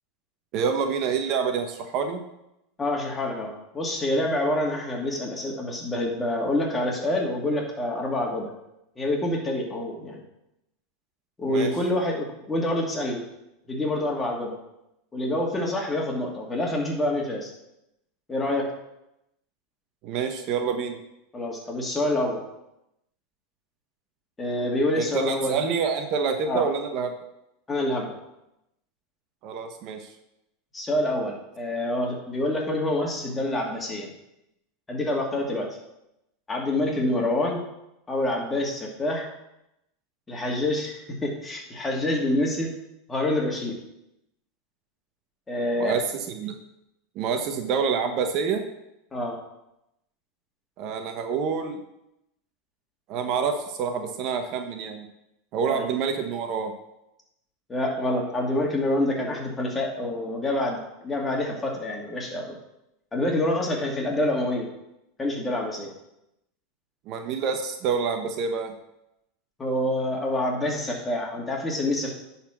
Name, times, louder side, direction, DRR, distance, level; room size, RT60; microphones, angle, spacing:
voice 1, 0.5-2.2 11.4-11.7 20.0-21.0 24.9-27.1 29.4-30.1 45.8-46.0 46.3-46.5 47.1-48.6 50.8-51.8 53.1-55.1 55.5-56.7 67.1-68.7, right 6 dB, 50° right, 6 dB, 1.1 m, -27 dB
voice 2, 2.8-8.5 9.0-10.2 11.4-13.2 13.7-14.6 15.1-17.5 18.3-18.7 21.3-22.4 24.4-25.6 26.5-26.6 27.7-28.1 30.7-34.1 34.9-35.7 36.5-37.6 38.1-39.3 40.3-42.7 43.1-43.7 45.5-46.0 49.1-49.4 55.7-55.9 57.7-62.6 63.1-64.7 65.2-65.9 69.6-72.1, left 1 dB, 20° left, -1 dB, 2.5 m, -27 dB
10.0 x 4.3 x 6.0 m, 0.86 s
hypercardioid pair, 95°, 0 cm